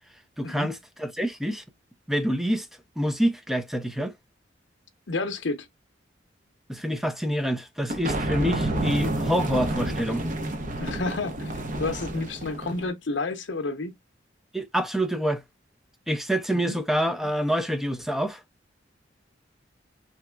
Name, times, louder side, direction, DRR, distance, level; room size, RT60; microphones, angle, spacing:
voice 1, 0.4-1.6 2.1-2.7 3.0-4.1 6.7-10.3 14.5-15.4 16.1-18.4, equal, ahead, 0.4 m, -26 dB
voice 2, 5.1-5.7 10.8-13.9 16.6-16.8, left 3 dB, 70° left, 0.6 m, -30 dB
sound 1, 7.9-12.9, right 1 dB, 45° right, 0.7 m, -29 dB
3.3 x 2.8 x 2.2 m
head